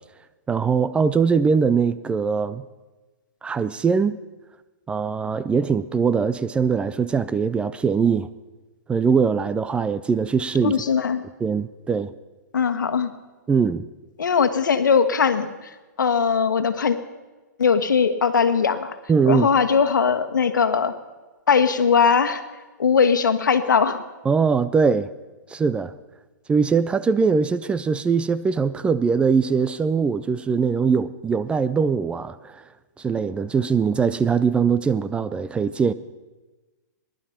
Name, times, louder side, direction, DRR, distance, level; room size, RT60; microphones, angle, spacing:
voice 1, 0.5-2.6 3.4-4.2 4.9-8.3 8.9-10.8 11.4-12.1 13.5-13.9 19.1-19.5 24.3-25.1 25.5-25.9 26.5-32.6 33.0-35.9, right 5 dB, 10° right, 14 dB, 0.4 m, -21 dB
voice 2, 10.6-11.2 12.5-13.1 14.2-15.7 16.0-17.0 17.6-19.0 19.3-20.9 21.5-22.4 22.8-24.0, left 6 dB, 85° left, 10 dB, 1.3 m, -20 dB
18.5 x 11.5 x 5.8 m, 1.2 s
hypercardioid pair, 135°, 10 cm